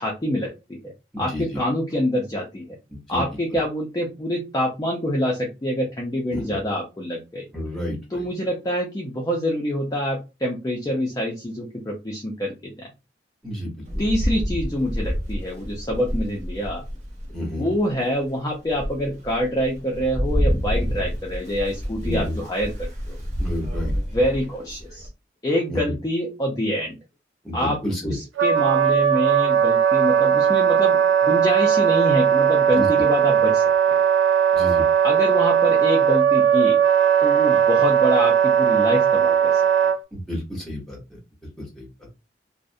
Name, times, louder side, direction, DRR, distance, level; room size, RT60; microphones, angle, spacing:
voice 1, 0.0-2.7 3.1-7.5 8.1-12.9 14.0-16.8 17.6-23.2 23.9-25.1 25.4-27.0 27.5-34.0 35.0-36.8 37.2-39.6, equal, 20° left, -2 dB, 0.4 m, -26 dB
voice 2, 2.9-3.2 6.3-6.6 7.5-8.2 13.4-14.0 17.3-17.7 22.0-22.4 23.4-23.9 25.7-25.9 27.4-28.1 32.8-32.9 34.5-34.8 40.1-41.2 41.8-41.9, equal, ahead, -2 dB, 0.9 m, -30 dB
Rain, 13.8-17.4 17.9-18.0 18.5-25.1, equal, 40° right, 0.6 m, -28 dB
Wind instrument woodwind instrument, 28.4-40.0, right 8 dB, 85° right, 0.3 m, -18 dB
2.4 x 2.0 x 2.6 m, 0.27 s
head